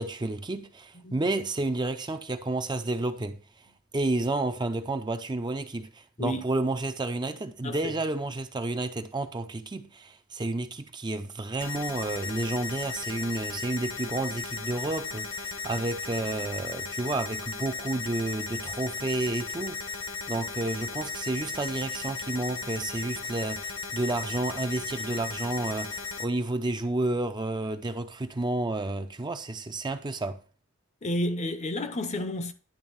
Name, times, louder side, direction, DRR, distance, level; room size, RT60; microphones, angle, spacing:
voice 1, 0.0-3.4 3.9-30.4, right 2 dB, 20° right, 0.5 m, -31 dB
sound 1, 11.6-26.2, left 5 dB, 75° left, 1.4 m, -36 dB
voice 2, 31.0-32.5, left 1 dB, 35° left, 0.7 m, -31 dB
10.5 x 3.4 x 7.0 m
head